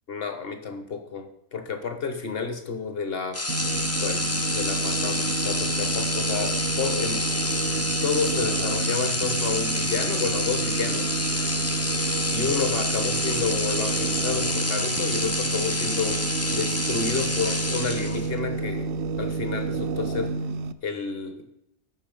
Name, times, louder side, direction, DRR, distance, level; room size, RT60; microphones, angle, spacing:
voice 1, 0.1-3.4 4.0-4.3 4.5-7.3 8.0-11.2 12.3-16.2 16.5-18.9 19.2-20.4 20.8-21.4, left 5 dB, 45° left, 7 dB, 1.4 m, -30 dB
sound 1, 3.3-18.4, left 2 dB, 20° left, 0.4 m, -28 dB
sound 2, 3.5-20.7, right 4 dB, 70° right, 0.9 m, -30 dB
13.5 x 5.8 x 5.4 m, 0.81 s
omnidirectional pair, 1.5 m